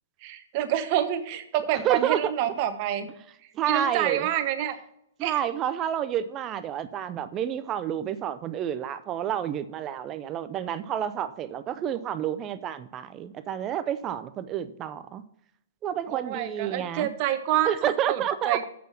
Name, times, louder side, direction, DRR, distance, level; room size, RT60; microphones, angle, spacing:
voice 1, 0.2-3.1 3.6-4.7 5.2-5.4 16.1-18.6, right 11 dB, 40° right, 9 dB, 1.1 m, -27 dB
voice 2, 1.8-2.3 3.5-4.3 5.2-15.2 15.8-17.1 17.6-18.6, right 10 dB, 25° right, 12 dB, 0.5 m, -29 dB
7.6 x 5.5 x 7.2 m, 0.75 s
hypercardioid pair, 140°, 0 cm